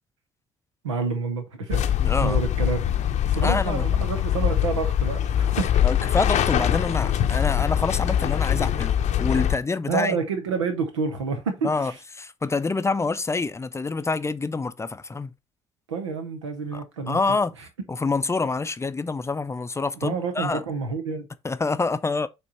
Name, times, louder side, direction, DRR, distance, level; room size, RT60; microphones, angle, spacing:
voice 1, 0.8-1.9 2.2-2.9 3.2-5.9 9.9-11.9 15.9-17.4 20.0-21.3, right 5 dB, 80° right, 1.1 m, -29 dB
sound 1, 1.7-9.6, left 10 dB, 50° left, 0.8 m, -23 dB
voice 2, 2.0-2.4 3.4-3.9 5.8-10.2 11.6-11.9 12.2-15.3 16.7-16.8 17.1-17.5 17.9-20.6 21.4-22.3, left 3 dB, 20° left, 0.5 m, -26 dB
6.9 x 3.4 x 4.2 m
figure-of-eight pair, 45°, 15 cm